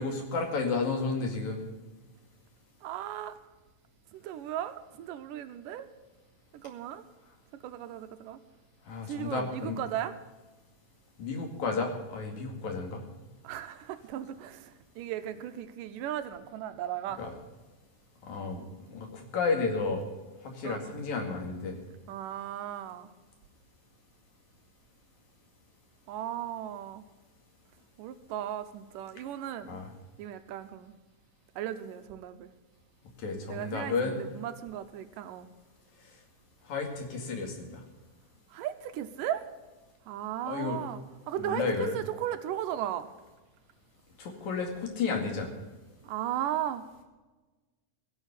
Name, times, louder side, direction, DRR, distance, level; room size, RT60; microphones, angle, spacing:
voice 1, 0.0-1.6 8.9-9.8 11.2-13.0 17.2-17.3 18.2-20.0 20.4-21.8 29.7-29.9 33.2-34.2 36.7-37.8 40.4-40.8 41.4-41.9 44.2-45.5, left 4 dB, 60° left, 3 dB, 3.5 m, -32 dB
voice 2, 2.8-3.4 4.1-5.9 6.5-7.0 7.6-8.4 9.1-10.2 13.4-17.2 20.6-20.9 22.1-23.1 26.1-27.0 28.0-29.8 30.2-30.9 31.6-32.5 33.5-35.5 38.5-39.5 40.1-41.0 41.3-43.1 46.0-46.8, right 11 dB, 80° right, 10 dB, 2.3 m, -36 dB
16.0 x 7.3 x 8.2 m, 1.2 s
omnidirectional pair, 3.9 m